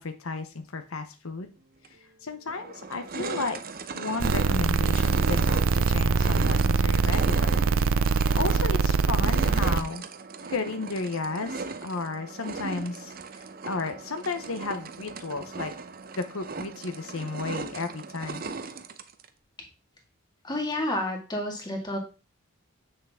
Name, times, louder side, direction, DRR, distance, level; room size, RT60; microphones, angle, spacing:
voice 1, 0.0-1.5 2.2-3.6 3.9-7.5 7.9-10.0 10.5-15.7 16.2-18.4, left 3 dB, 75° left, 7 dB, 0.9 m, -33 dB
sound 1, 1.8-1.9 2.5-19.3, right 4 dB, 45° right, 0.7 m, -38 dB
sound 2, 4.2-9.8, right 4 dB, 75° right, 0.6 m, -23 dB
voice 2, 20.4-22.0, left 1 dB, 20° left, 2 dB, 2.0 m, -30 dB
8.0 x 6.6 x 3.6 m, 0.32 s
head